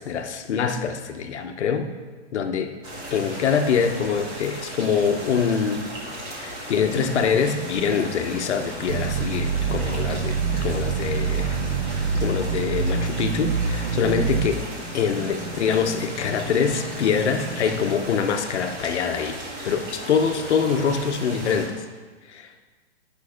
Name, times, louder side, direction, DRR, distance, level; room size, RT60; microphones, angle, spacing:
voice 1, 0.0-1.9 2.3-2.7 3.1-5.9 6.3-10.3 10.6-11.6 12.2-14.6 14.9-19.4 19.6-21.8 22.3-22.5, left 6 dB, 70° left, 6 dB, 1.0 m, -24 dB
sound 1, 2.8-21.7, right 1 dB, 25° right, 1.9 m, -36 dB
sound 2, 6.8-17.8, equal, 10° right, 1.3 m, -38 dB
sound 3, 8.9-14.5, right 6 dB, 40° right, 0.5 m, -26 dB
8.5 x 5.5 x 5.0 m, 1.4 s
hypercardioid pair, 155°, 35 cm